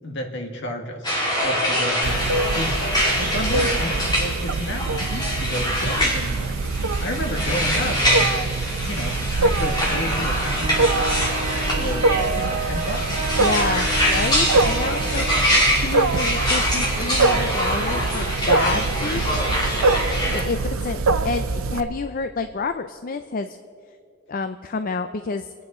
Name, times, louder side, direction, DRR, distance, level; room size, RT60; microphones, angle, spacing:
voice 1, 0.0-6.6 7.0-8.4 8.8-10.9 11.7-13.3, left 1 dB, 60° left, 2 dB, 1.8 m, -31 dB
sound 1, 1.0-20.4, equal, 20° left, 3.1 m, -24 dB
Wild animals, 2.0-21.8, right 3 dB, 85° right, 0.7 m, -24 dB
sound 2, 10.5-15.5, right 3 dB, 40° right, 0.7 m, -33 dB
voice 2, 13.4-15.3 15.7-19.4 20.3-23.6 24.3-25.5, left 4 dB, 45° left, 9 dB, 0.5 m, -28 dB
27.5 x 9.4 x 4.3 m, 2.4 s
head